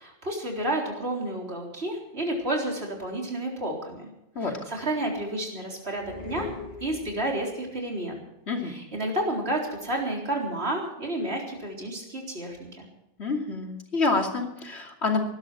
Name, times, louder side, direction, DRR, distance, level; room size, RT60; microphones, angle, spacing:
voice 1, 0.0-4.1 4.4-6.5 6.8-8.2 8.6-12.9, right 1 dB, 75° right, 0 dB, 4.3 m, -31 dB
sound 1, 5.9-7.5, left 4 dB, 40° left, 2.6 m, -39 dB
voice 2, 13.2-15.2, left 3 dB, 80° left, 2 dB, 3.0 m, -27 dB
19.0 x 12.0 x 6.2 m, 0.87 s
omnidirectional pair, 1.1 m